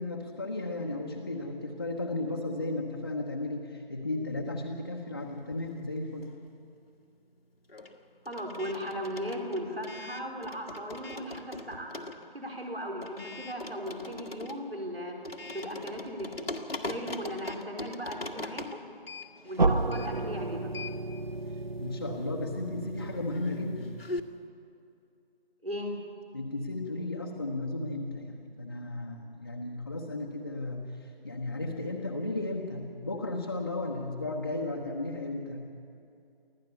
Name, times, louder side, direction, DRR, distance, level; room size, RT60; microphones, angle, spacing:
voice 1, 0.0-6.3 21.8-23.9 26.3-35.6, left 2 dB, 20° left, -3 dB, 1.0 m, -34 dB
sound 1, 5.4-6.6 6.9-24.2, left 2 dB, 80° left, 1.7 m, -42 dB
voice 2, 8.2-12.0 12.3-15.2 15.5-16.5 16.8-18.8 19.4-20.7 25.6-25.9, equal, 85° right, 1 dB, 4.2 m, -37 dB
sound 2, 19.6-24.4, right 2 dB, 55° right, 0.7 m, -32 dB
25.0 x 15.5 x 7.0 m, 2.6 s
figure-of-eight pair, 165°, 29 cm